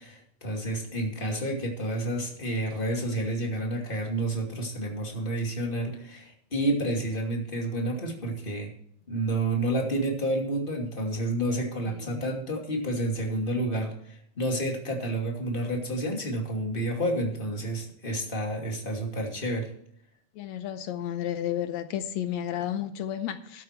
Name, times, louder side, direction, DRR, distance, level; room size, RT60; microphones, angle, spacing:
voice 1, 0.0-8.7 9.1-19.7, right 1 dB, 20° left, 2.4 m, -30 dB
voice 2, 11.9-12.2 20.4-23.6, left 11 dB, 75° left, 1.8 m, -32 dB
13.0 x 9.2 x 4.5 m
omnidirectional pair, 3.6 m